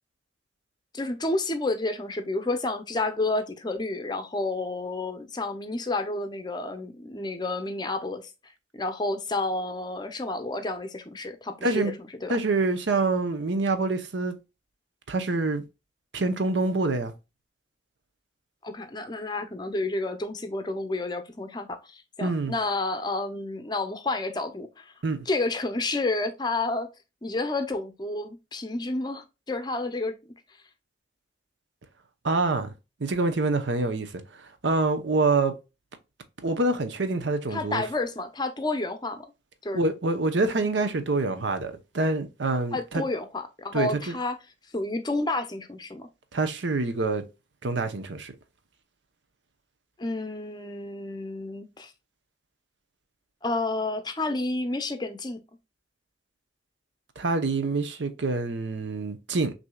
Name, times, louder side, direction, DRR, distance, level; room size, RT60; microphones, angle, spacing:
voice 1, 0.9-8.2 8.7-11.9 12.2-12.3 18.6-24.9 25.3-26.9 27.2-30.1 37.5-39.3 39.6-39.8 42.7-44.4 44.7-46.1 50.0-51.9 53.4-55.4, left 2 dB, 20° left, 0.6 m, -30 dB
voice 2, 11.6-11.9 12.3-14.4 15.1-15.6 16.1-17.1 22.2-22.5 25.0-25.3 32.2-32.7 33.0-34.1 34.6-35.5 36.4-37.8 39.7-43.0 43.7-44.1 46.3-47.2 47.6-48.3 57.2-59.5, right 3 dB, 75° right, 0.8 m, -26 dB
6.0 x 2.7 x 2.2 m
head